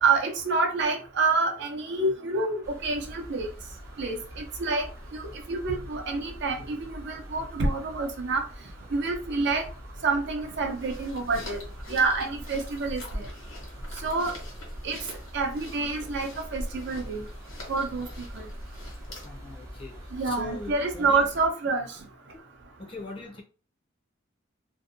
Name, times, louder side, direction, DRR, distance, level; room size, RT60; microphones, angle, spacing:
voice 1, 0.0-3.5 4.0-4.8 5.1-5.2 5.5-8.4 8.9-9.6 10.0-11.6 11.9-13.2 14.0-14.3 14.8-15.0 15.3-17.2 17.7-18.1 18.4-18.5 20.1-21.9, right 3 dB, 60° right, 4 dB, 0.5 m, -27 dB
sound 1, 2.6-21.5, equal, 15° right, 0.6 m, -45 dB
sound 2, 10.5-19.5, equal, 75° left, 1.2 m, -41 dB
voice 2, 19.2-21.3 22.3-22.5 22.8-23.4, left 3 dB, 25° left, -1 dB, 0.5 m, -41 dB
2.6 x 2.1 x 2.5 m, 0.36 s
head